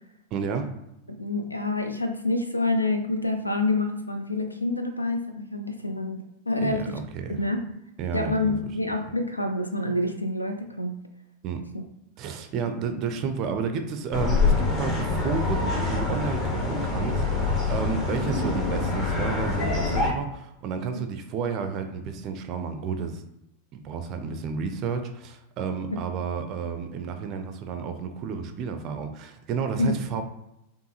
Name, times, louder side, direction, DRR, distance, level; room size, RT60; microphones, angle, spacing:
voice 1, 0.3-0.7 6.6-7.4 8.0-8.5 11.4-11.6 12.2-23.2 23.7-30.2, right 6 dB, 40° right, 7 dB, 0.4 m, -31 dB
voice 2, 1.1-6.9 7.4-7.7 8.1-11.0 11.7-11.8 20.9-21.0 25.9-26.0 29.8-30.0, left 2 dB, 85° left, 7 dB, 0.4 m, -27 dB
sound 1, 14.1-20.1, left 3 dB, 35° left, 0.9 m, -25 dB
4.5 x 2.6 x 2.8 m, 0.85 s
figure-of-eight pair, 90°, 0 cm